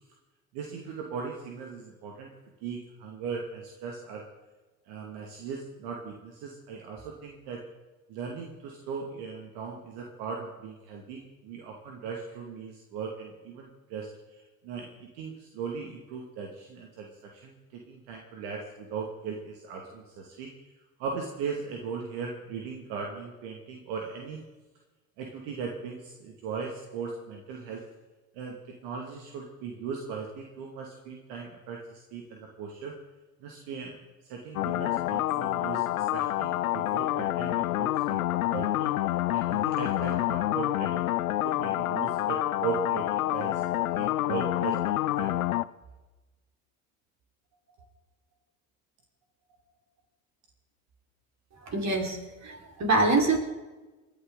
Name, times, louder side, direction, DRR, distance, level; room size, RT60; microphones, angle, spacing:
voice 1, 0.5-2.3 2.6-4.3 4.9-7.7 8.1-20.7 21.0-24.4 25.2-27.8 28.3-32.9 33.4-34.0 34.2-38.2 38.5-41.0 41.4-43.6 43.9-45.4, right 5 dB, 65° right, 1 dB, 2.5 m, -38 dB
sound 1, 34.6-45.7, left 15 dB, 85° left, 0.6 m, -28 dB
voice 2, 51.7-52.2 52.4-53.4, right 2 dB, 40° right, 1 dB, 5.0 m, -24 dB
29.5 x 11.5 x 4.0 m, 1.2 s
hypercardioid pair, 65°, 42 cm